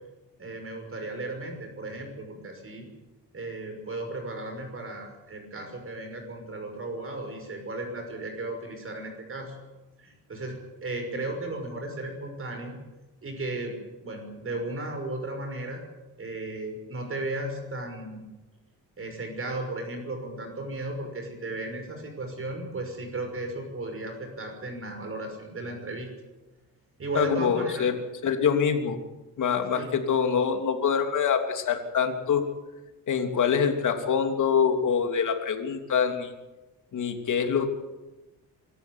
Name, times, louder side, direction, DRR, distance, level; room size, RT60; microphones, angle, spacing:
voice 1, 0.4-2.9 3.3-9.6 10.0-12.7 13.2-15.8 16.2-18.2 19.0-26.1 27.0-27.9 29.7-29.9, right 2 dB, 40° right, 4 dB, 6.0 m, -35 dB
voice 2, 27.1-27.9 28.2-29.0 29.4-32.4 33.1-36.3 36.9-37.7, left 7 dB, 60° left, 5 dB, 3.1 m, -25 dB
25.0 x 14.0 x 9.6 m, 1.1 s
cardioid pair, 120°, 35 cm